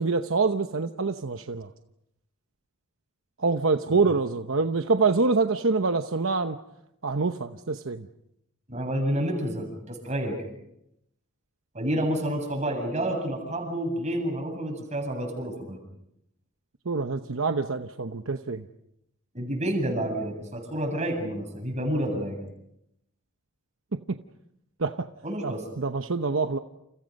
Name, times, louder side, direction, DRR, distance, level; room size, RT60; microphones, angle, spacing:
voice 1, 0.0-1.7 3.4-6.6 7.0-8.1 16.9-18.6 24.1-24.2 24.8-25.1 25.4-26.6, right 4 dB, 70° right, 8 dB, 0.9 m, -26 dB
voice 2, 8.7-10.3 11.7-15.8 19.3-22.4 25.2-25.6, right 1 dB, 35° right, 3 dB, 7.8 m, -29 dB
29.5 x 29.5 x 5.4 m, 0.81 s
head